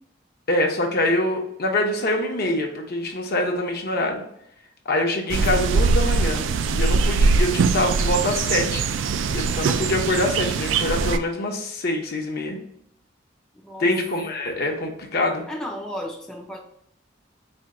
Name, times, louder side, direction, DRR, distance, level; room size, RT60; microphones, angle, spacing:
voice 1, 0.5-4.2 4.9-8.9 9.3-12.6 13.8-15.4, left 1 dB, 55° left, 2 dB, 0.7 m, -25 dB
sound 1, 5.3-11.2, right 4 dB, 75° right, 0.3 m, -22 dB
voice 2, 15.5-16.6, equal, 5° left, -1 dB, 0.4 m, -33 dB
4.3 x 2.2 x 3.7 m, 0.75 s
head